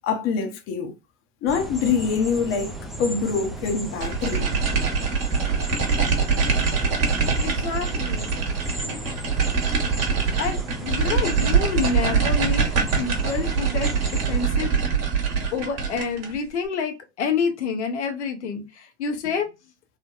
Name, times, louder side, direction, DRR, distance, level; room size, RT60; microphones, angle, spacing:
voice 1, 0.0-0.9 1.4-2.7 3.0-4.5, left 5 dB, 40° left, 0.7 m, -24 dB
sound 1, 1.5-14.5, right 1 dB, ahead, 0.4 m, -35 dB
sound 2, 4.0-16.4, right 5 dB, 45° right, 1.1 m, -23 dB
voice 2, 7.4-8.3 8.8-9.0 10.4-12.7 13.0-13.9 14.3-14.7 15.5-19.5, left 5 dB, 80° left, 0.7 m, -28 dB
3.2 x 2.1 x 2.3 m
hypercardioid pair, 85°, 34 cm